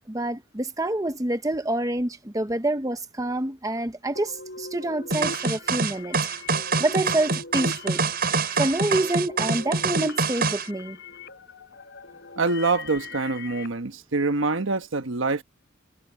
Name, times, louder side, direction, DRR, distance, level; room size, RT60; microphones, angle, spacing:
voice 1, 0.1-6.2 6.8-8.0 8.6-11.0, right 1 dB, 15° right, 1.0 m, -27 dB
sound 1, 4.1-13.7, left 3 dB, 60° left, 4.6 m, -41 dB
sound 2, 5.1-10.7, right 4 dB, 50° right, 6.8 m, -25 dB
voice 2, 12.4-15.4, right 3 dB, 80° right, 1.3 m, -25 dB
head